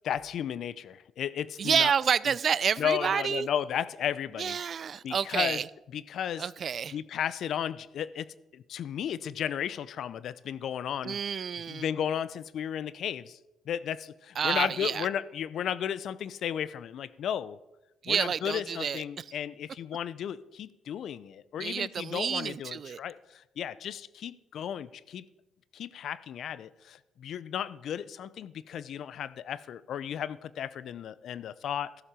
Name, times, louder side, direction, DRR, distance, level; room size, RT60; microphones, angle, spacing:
voice 1, 0.0-1.9 2.3-2.4 2.8-4.6 5.0-5.6 5.9-6.5 6.9-11.2 11.7-13.4 13.7-17.6 18.1-25.2 25.7-32.0, left 9 dB, 70° left, 18 dB, 0.4 m, -34 dB
voice 2, 1.6-3.5 4.4-5.7 6.4-7.0 11.0-11.9 14.4-15.1 18.0-19.2 21.6-23.0, right 7 dB, 50° right, 21 dB, 0.3 m, -29 dB
14.0 x 7.3 x 4.9 m, 0.99 s
cardioid pair, 90°, 0 cm